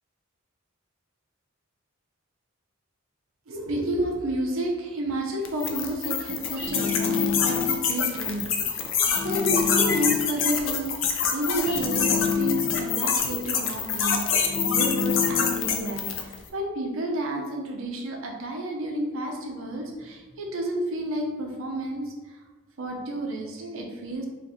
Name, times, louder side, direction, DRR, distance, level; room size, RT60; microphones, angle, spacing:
voice 1, 3.5-8.4 8.7-8.9 9.2-22.4 22.8-24.3, right 1 dB, 75° right, 1 dB, 0.6 m, -31 dB
sound 1, 5.4-16.4, left 6 dB, 60° left, 0.4 m, -26 dB
sound 2, 6.6-7.9 9.1-10.4 11.7-13.0 14.3-15.7, left 7 dB, 5° right, 0.8 m, -28 dB
2.6 x 2.4 x 4.1 m, 1.3 s
head